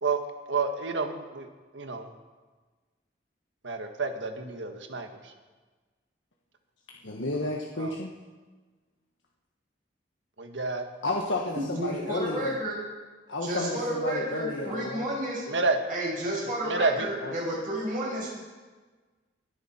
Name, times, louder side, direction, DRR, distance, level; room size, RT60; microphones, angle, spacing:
voice 1, 0.5-1.5 1.7-2.1 3.6-5.3 7.8-7.9 10.4-10.9 15.5-15.8 16.6-17.1, right 3 dB, 85° right, 5 dB, 1.6 m, -29 dB
voice 2, 7.0-8.1 11.0-12.6 13.3-15.1 17.2-17.3, left 2 dB, 85° left, -1 dB, 1.4 m, -31 dB
voice 3, 11.8-12.8 13.4-15.4 15.9-18.3, right 1 dB, 45° right, -4 dB, 6.2 m, -31 dB
23.5 x 10.5 x 4.4 m, 1.3 s
head